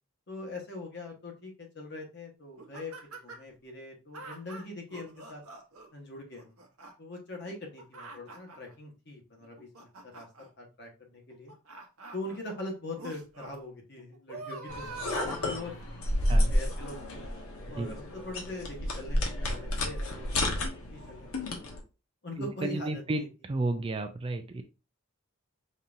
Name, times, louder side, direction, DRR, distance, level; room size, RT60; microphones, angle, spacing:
voice 1, 0.3-5.4 5.9-6.6 7.0-10.3 10.6-11.5 12.1-15.7 16.3-17.2 17.7-21.7 22.2-23.3, left 2 dB, 50° left, 1 dB, 1.2 m, -42 dB
sound 1, 2.6-3.5 4.1-5.9 6.3-6.9 7.5-8.7 9.4-10.5 11.3-12.4 13.0-13.6 14.0-16.1 16.7-16.8, right 3 dB, 90° right, 0.8 m, -45 dB
sound 2, 14.7-21.8, left 1 dB, 80° left, 1.0 m, -31 dB
voice 2, 22.4-24.6, right 2 dB, 25° right, 7 dB, 0.3 m, -32 dB
5.3 x 2.8 x 2.5 m, 0.31 s
head